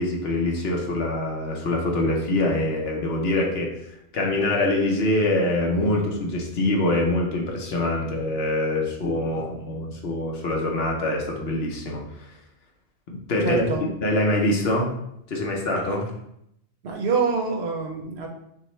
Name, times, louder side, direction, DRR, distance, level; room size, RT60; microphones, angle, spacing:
voice 1, 0.0-3.8 4.1-12.3 13.1-13.6 14.0-14.9 15.3-16.1, left 1 dB, 60° left, -1 dB, 1.0 m, -24 dB
voice 2, 13.4-13.8 16.8-18.3, right 4 dB, 65° right, 2 dB, 0.9 m, -25 dB
6.2 x 2.1 x 3.0 m, 0.77 s
omnidirectional pair, 1.2 m